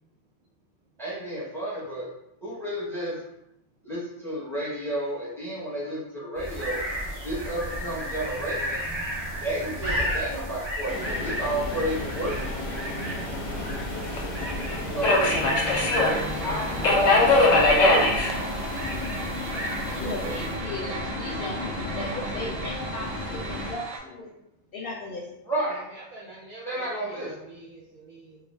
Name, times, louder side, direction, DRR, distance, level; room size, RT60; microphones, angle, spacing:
voice 1, 1.0-2.1 2.4-3.2 3.8-6.8 7.2-8.8 9.4-12.4 14.9-15.4 16.3-18.2 20.0-20.3 25.5-25.8 26.6-27.3, right 1 dB, ahead, -7 dB, 0.7 m, -31 dB
sound 1, 6.4-20.7, equal, 35° right, 0.8 m, -33 dB
Subway metro underground, 10.9-23.7, left 2 dB, 90° left, 1.0 m, -26 dB
sound 2, 15.7-24.0, right 3 dB, 90° right, 0.9 m, -38 dB
voice 2, 15.9-16.4 16.9-17.9 20.0-24.3 24.7-25.2, left 2 dB, 60° left, -3 dB, 0.6 m, -37 dB
voice 3, 25.9-28.4, right 2 dB, 60° right, -6 dB, 0.5 m, -45 dB
2.4 x 2.3 x 3.2 m, 0.83 s
omnidirectional pair, 1.3 m